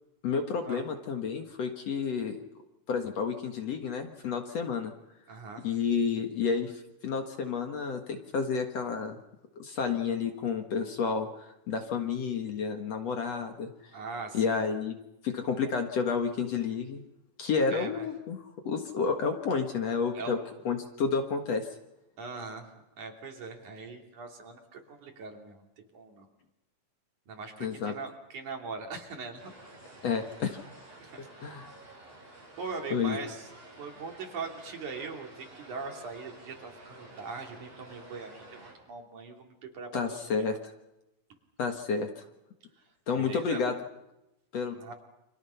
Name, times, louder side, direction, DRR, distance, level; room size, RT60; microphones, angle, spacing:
voice 1, 0.2-2.4 2.9-4.9 5.6-9.2 9.6-13.7 14.3-15.0 15.2-17.0 17.4-20.4 20.6-21.7 27.6-27.9 30.0-30.6 31.4-31.7 32.9-33.2 39.9-40.6 41.6-42.2 43.1-43.7 44.5-44.9, left 5 dB, 55° left, 5 dB, 2.4 m, -30 dB
voice 2, 5.3-5.7 13.9-14.6 17.7-18.1 20.1-20.4 22.2-25.6 25.9-26.3 27.3-29.5 31.0-31.3 32.6-33.5 33.8-40.2 40.4-40.6 43.2-43.6 44.7-44.9, right 4 dB, 60° right, 2 dB, 4.3 m, -41 dB
sound 1, 29.4-38.7, right 2 dB, 15° right, 7.2 m, -51 dB
29.5 x 26.5 x 5.8 m, 0.92 s
omnidirectional pair, 4.0 m